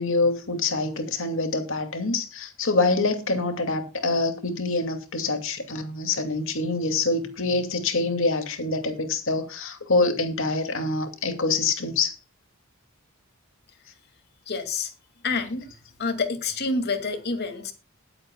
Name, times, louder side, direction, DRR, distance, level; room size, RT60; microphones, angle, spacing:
voice 1, 0.0-12.2, left 3 dB, 65° left, 2.5 m, -25 dB
voice 2, 14.5-14.9 15.2-15.7 16.0-17.7, left 3 dB, 50° left, 2.5 m, -28 dB
21.0 x 8.7 x 2.4 m
head